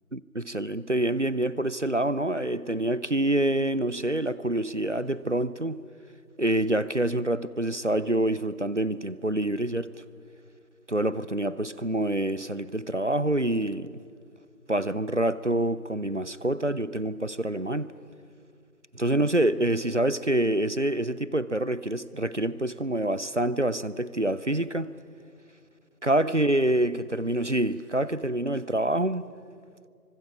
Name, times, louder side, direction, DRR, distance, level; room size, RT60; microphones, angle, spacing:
voice 1, 0.1-5.8 6.4-10.0 10.9-14.0 14.7-17.9 19.0-24.9 26.0-29.3, right 1 dB, 50° right, 0.7 m, -26 dB
25.0 x 22.5 x 7.2 m
figure-of-eight pair, 175°, 47 cm